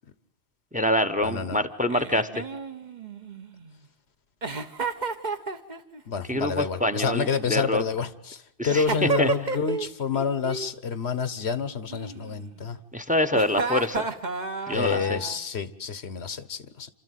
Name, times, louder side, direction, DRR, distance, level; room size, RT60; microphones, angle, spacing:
voice 1, 0.7-2.4 6.3-7.8 8.6-9.3 12.9-14.1 14.7-15.2, left 1 dB, 10° right, 12 dB, 0.9 m, -25 dB
voice 2, 1.2-1.6 6.1-12.8 14.7-16.9, left 6 dB, 85° left, 14 dB, 1.3 m, -28 dB
Giggle, 1.9-3.7 4.4-6.0 7.1-8.0 8.7-9.9 10.1-10.7 11.9-12.7 13.3-15.4, right 4 dB, 45° right, 1.3 m, -32 dB
28.0 x 13.0 x 9.2 m, 0.77 s
omnidirectional pair, 1.1 m